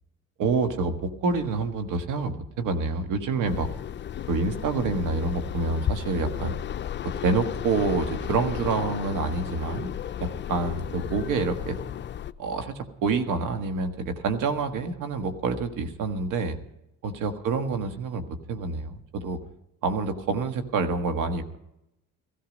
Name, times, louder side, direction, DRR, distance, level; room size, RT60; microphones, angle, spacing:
voice 1, 0.4-3.7 4.3-6.5 7.2-9.9 10.2-11.8 12.4-16.6 17.0-19.4 19.8-21.6, right 4 dB, 75° right, 7 dB, 1.6 m, -27 dB
sound 1, 3.4-12.3, left 10 dB, 35° left, 0.6 m, -34 dB
15.5 x 14.0 x 5.2 m, 0.83 s
supercardioid pair, 80°, 33 cm